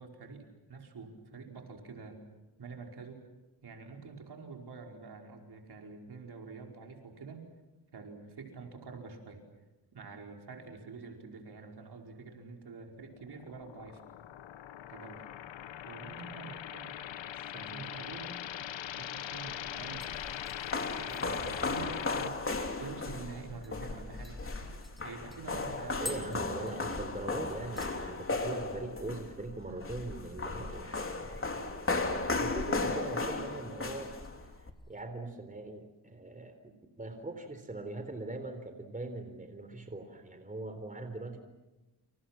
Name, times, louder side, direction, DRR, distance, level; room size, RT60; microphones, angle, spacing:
voice 1, 0.0-2.2 2.6-3.2 3.6-7.4 7.9-9.4 9.9-14.0 14.9-15.2 15.8-17.0 17.3-18.4 18.9-20.2 21.1-22.5 22.8-24.4 25.0-26.9, right 4 dB, 60° right, 2 dB, 5.1 m, -47 dB
sound 1, 13.0-22.3, left 11 dB, 80° left, 1.1 m, -41 dB
sound 2, 19.7-34.7, left 3 dB, 30° left, 3.3 m, -36 dB
sound 3, 20.0-22.8 23.2-23.3 23.6-23.8 24.2-27.2 27.5-28.0 28.3-28.7 29.0-29.1 31.2-31.8 32.2-32.9 33.3-33.6 34.1-35.0 35.4-35.5, equal, ahead, 5.0 m, -50 dB
voice 2, 26.0-31.6 32.2-34.1 34.4-41.4, right 2 dB, 20° right, 7 dB, 3.8 m, -41 dB
29.0 x 28.0 x 6.0 m, 1.0 s
cardioid pair, 95°, 44 cm